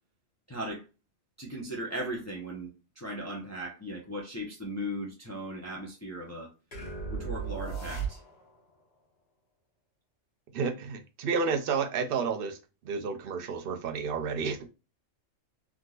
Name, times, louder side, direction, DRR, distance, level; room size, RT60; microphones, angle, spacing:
voice 1, 0.5-0.8 1.4-6.5 7.1-8.2, equal, 15° left, 0.7 m, -37 dB
sound 1, 6.7-8.6, right 5 dB, 55° left, 1.3 m, -36 dB
voice 2, 10.5-12.6 12.8-14.7, right 5 dB, 55° right, 0.7 m, -31 dB
3.5 x 2.8 x 2.4 m
omnidirectional pair, 1.3 m